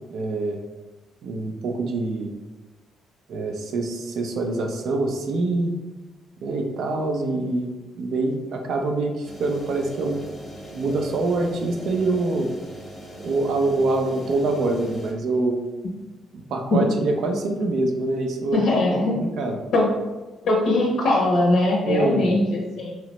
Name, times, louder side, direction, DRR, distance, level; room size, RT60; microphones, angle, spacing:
voice 1, 0.1-0.6 1.2-2.3 3.3-5.8 6.4-7.7 8.0-10.2 10.7-12.5 13.2-15.6 16.3-19.6 21.8-22.3, right 2 dB, 75° right, 3 dB, 0.4 m, -25 dB
sound 1, 9.3-15.1, equal, 25° left, 0.7 m, -39 dB
voice 2, 18.5-19.2 19.7-19.9 20.4-23.0, left 2 dB, 75° left, -2 dB, 0.6 m, -21 dB
2.8 x 2.0 x 2.9 m, 1.1 s
cardioid pair, 90°, 0 cm